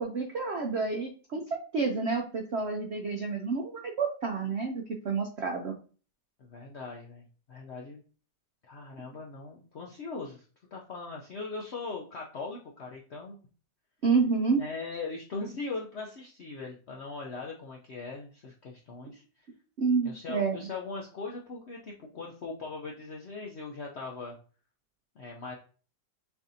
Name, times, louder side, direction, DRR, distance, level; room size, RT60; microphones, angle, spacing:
voice 1, 0.0-5.7 14.0-14.6 19.8-20.7, right 4 dB, 80° right, 2 dB, 0.5 m, -29 dB
voice 2, 6.4-8.0 8.7-10.4 10.7-13.4 14.6-19.5 20.0-24.4 25.2-25.6, left 3 dB, 70° left, -1 dB, 0.6 m, -40 dB
6.8 x 2.7 x 2.6 m, 0.39 s
omnidirectional pair, 1.9 m